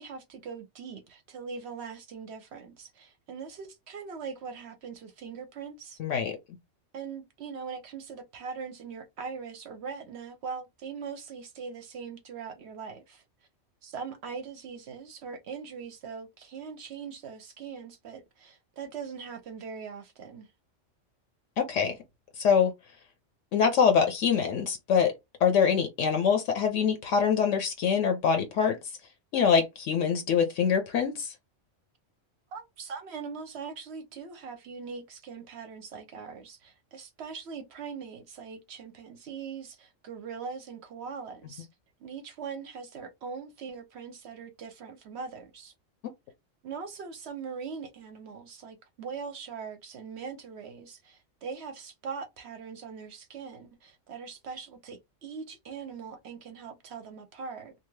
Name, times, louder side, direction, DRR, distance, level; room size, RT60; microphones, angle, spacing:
voice 1, 0.0-6.0 6.9-13.2 13.8-20.5 32.5-41.7 42.0-45.7 46.6-57.7, right 5 dB, 65° right, 0.8 m, -41 dB
voice 2, 6.0-6.4 21.6-22.0 22.4-22.7 23.5-25.1 25.4-28.8 29.3-31.3, left 6 dB, 75° left, 0.9 m, -24 dB
2.7 x 2.3 x 3.1 m
omnidirectional pair, 1.3 m